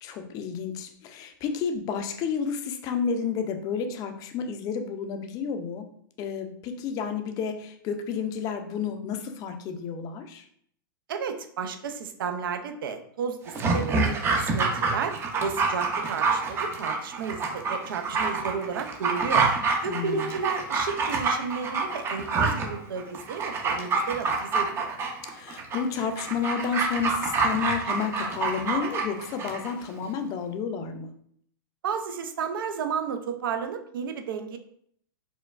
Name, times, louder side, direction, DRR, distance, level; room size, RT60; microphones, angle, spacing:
voice 1, 0.0-5.9 6.2-10.5 19.8-20.3 25.2-31.1, left 6 dB, 30° left, 6 dB, 0.4 m, -31 dB
voice 2, 11.1-15.2 15.4-19.5 19.8-24.9 31.8-34.6, right 6 dB, 75° right, 7 dB, 0.5 m, -32 dB
Dog, 13.5-29.7 30.0-30.1, right 4 dB, 20° right, 0.5 m, -27 dB
4.3 x 2.2 x 2.4 m, 0.65 s
hypercardioid pair, 130°, 12 cm